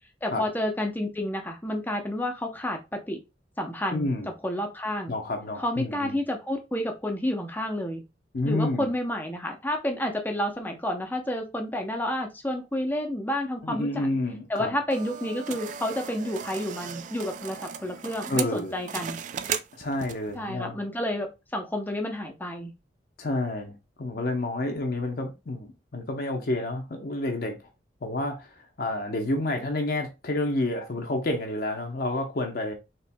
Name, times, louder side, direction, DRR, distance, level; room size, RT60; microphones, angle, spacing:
voice 1, 0.2-3.2 3.6-4.1 4.4-5.1 5.6-8.0 8.4-14.1 14.5-19.2 20.3-22.7, left 1 dB, 10° left, 0.6 m, -30 dB
voice 2, 3.9-4.3 5.1-6.2 8.3-8.9 13.6-14.7 18.3-18.8 19.7-20.8 23.2-27.7 28.0-32.7, left 2 dB, 55° left, 0.7 m, -29 dB
sound 1, 14.9-20.4, right 7 dB, 45° right, 0.3 m, -36 dB
4.3 x 3.0 x 2.2 m
head